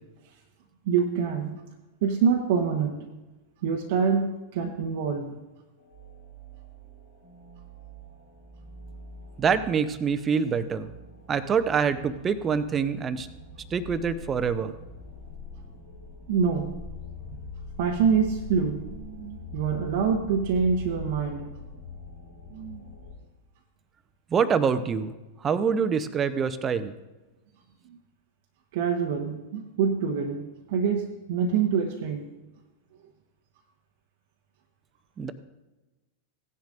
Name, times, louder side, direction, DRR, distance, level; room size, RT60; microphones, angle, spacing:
voice 1, 0.9-1.5 2.0-3.1 3.6-5.4 16.3-16.7 17.8-21.5 22.5-22.8 27.9-28.0 28.7-32.3, right 6 dB, 50° right, 1 dB, 1.0 m, -26 dB
sound 1, 5.8-23.1, left 2 dB, 75° left, 2.1 m, -43 dB
voice 2, 9.4-10.9 11.3-13.3 13.7-14.7 24.3-25.1 25.4-26.9 35.2-35.3, right 6 dB, 25° right, 12 dB, 0.7 m, -25 dB
17.0 x 10.5 x 2.5 m, 1.1 s
figure-of-eight pair, 90°, 0 cm